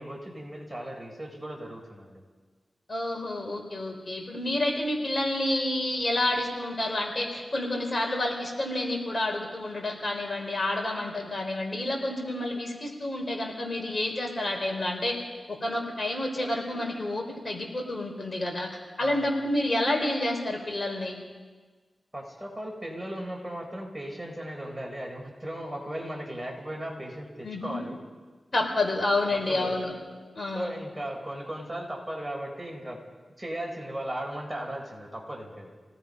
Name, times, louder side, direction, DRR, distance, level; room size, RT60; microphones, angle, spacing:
voice 1, 0.0-2.2 19.0-19.3 22.1-28.0 29.3-29.8 30.5-33.0 33.4-35.7, right 1 dB, 10° right, 0 dB, 5.1 m, -37 dB
voice 2, 2.9-15.1 15.5-18.7 19.0-21.2 27.4-27.8 28.5-29.9 30.3-30.7, left 1 dB, 40° left, 1 dB, 4.7 m, -29 dB
28.5 x 18.5 x 5.5 m, 1.4 s
cardioid pair, 70°, 0 cm